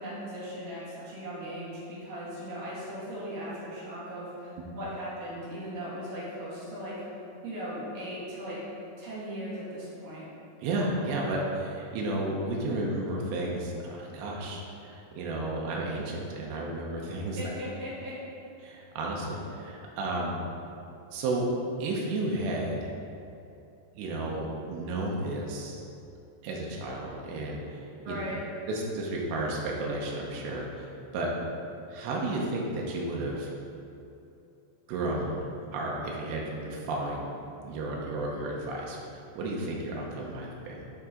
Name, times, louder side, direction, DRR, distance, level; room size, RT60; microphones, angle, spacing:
voice 1, 0.0-6.9 7.4-8.6 9.0-10.2 17.4-18.1 28.0-28.4, equal, 60° right, -9 dB, 3.4 m, -38 dB
voice 2, 10.6-17.4 18.6-20.4 21.1-21.5 21.8-22.9 24.0-25.8 26.4-28.2 28.7-31.3 31.9-33.5 34.9-35.5 35.7-37.3 37.6-40.9, right 2 dB, 90° right, -2 dB, 3.0 m, -32 dB
10.5 x 4.7 x 3.7 m, 2.7 s
omnidirectional pair, 5.0 m